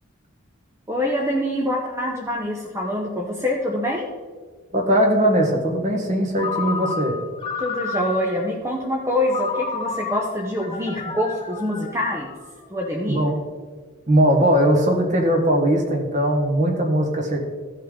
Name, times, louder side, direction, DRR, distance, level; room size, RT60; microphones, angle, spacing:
voice 1, 0.9-4.1 7.6-12.3 12.7-13.2, left 1 dB, 15° right, -2 dB, 0.8 m, -25 dB
voice 2, 4.7-7.2 13.1-13.4 14.1-17.4, right 1 dB, 35° right, 1 dB, 1.5 m, -19 dB
Ringtone, 6.4-8.4 9.3-12.6, left 4 dB, 25° left, 0.6 m, -31 dB
15.5 x 5.5 x 3.8 m, 1.5 s
head